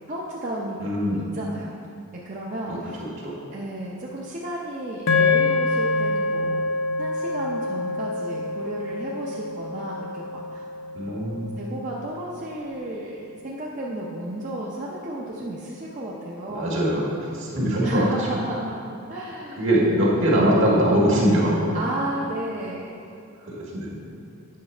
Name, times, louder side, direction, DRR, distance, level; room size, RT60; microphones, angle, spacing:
voice 1, 0.1-0.8 1.1-1.8 2.1-3.0 3.5-10.6 11.1-16.8 17.8-18.7 19.1-19.7 21.7-23.0, right 1 dB, 35° right, -5 dB, 0.7 m, -33 dB
voice 2, 0.8-1.2 2.7-3.4 10.9-11.5 16.5-18.1 19.6-21.7 23.4-24.0, equal, 60° right, -4 dB, 1.8 m, -22 dB
sound 1, 5.1-13.4, left 3 dB, 70° left, 0.8 m, -27 dB
8.6 x 6.2 x 4.4 m, 2.5 s
head